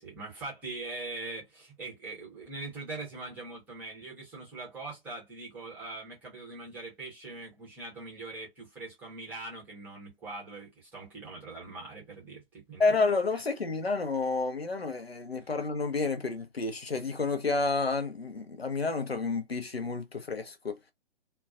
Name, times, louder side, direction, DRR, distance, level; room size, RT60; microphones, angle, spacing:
voice 1, 0.0-13.0 15.4-15.5, right 3 dB, 5° right, 0.7 m, -42 dB
voice 2, 12.8-20.8, left 3 dB, 85° left, 0.7 m, -30 dB
2.2 x 2.2 x 2.4 m
figure-of-eight pair, 130°, 30 cm